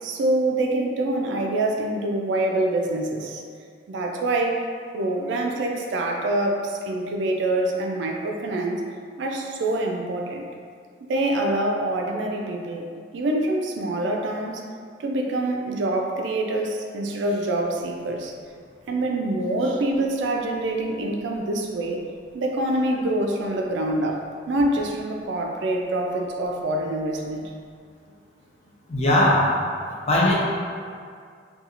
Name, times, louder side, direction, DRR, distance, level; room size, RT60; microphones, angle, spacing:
voice 1, 0.0-3.4 3.9-4.6 4.9-8.8 9.2-10.5 11.1-12.9 13.1-14.6 15.0-18.3 18.9-22.0 22.3-27.5, right 1 dB, 70° right, 2 dB, 0.3 m, -25 dB
voice 2, 28.9-29.6 30.1-30.3, left 1 dB, 35° left, -4 dB, 0.4 m, -19 dB
2.5 x 2.3 x 2.8 m, 2.2 s
head